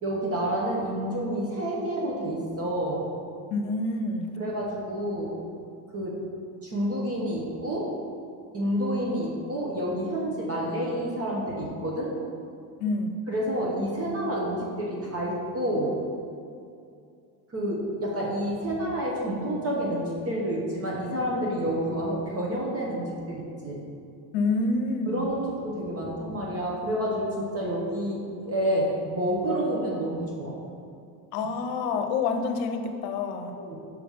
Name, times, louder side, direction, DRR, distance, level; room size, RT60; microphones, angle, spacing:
voice 1, 0.0-3.1 4.4-5.3 5.9-6.2 6.6-7.9 8.5-12.1 13.3-16.0 17.5-23.8 25.1-30.6 33.6-33.8, equal, 30° right, -4 dB, 1.1 m, -29 dB
voice 2, 3.5-4.3 12.8-13.1 24.3-25.3 31.3-33.5, left 3 dB, 65° left, 6 dB, 0.8 m, -27 dB
6.0 x 3.3 x 5.5 m, 2.5 s
supercardioid pair, 100°, 49 cm